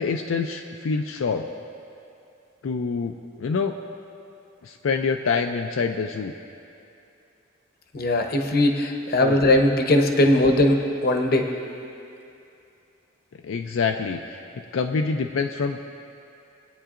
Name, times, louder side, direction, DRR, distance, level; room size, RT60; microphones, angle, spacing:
voice 1, 0.0-1.4 2.6-3.8 4.6-6.3 9.2-9.5 13.4-14.4 14.7-15.8, left 5 dB, 85° left, 4 dB, 0.4 m, -26 dB
voice 2, 7.9-11.5, left 1 dB, 50° left, 4 dB, 0.8 m, -20 dB
20.5 x 8.9 x 2.5 m, 2.6 s
head